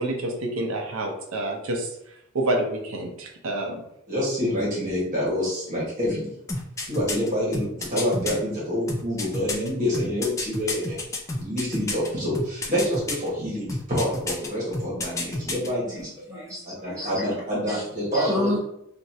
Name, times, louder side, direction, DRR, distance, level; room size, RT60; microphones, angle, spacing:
voice 1, 0.0-1.9 2.3-3.8, right 1 dB, 70° right, 2 dB, 0.6 m, -28 dB
voice 2, 4.1-6.3 6.9-16.1 16.6-18.6, equal, 35° right, -6 dB, 1.3 m, -27 dB
sound 1, 6.5-8.3 8.9-12.1 12.3-13.3 13.7-14.5 14.7-15.7 16.0-16.1, left 2 dB, 15° left, 0.3 m, -29 dB
voice 3, 15.9-17.3 17.7-17.8 18.1-18.6, left 1 dB, 15° right, -8 dB, 1.2 m, -31 dB
3.0 x 2.5 x 2.7 m, 0.78 s
head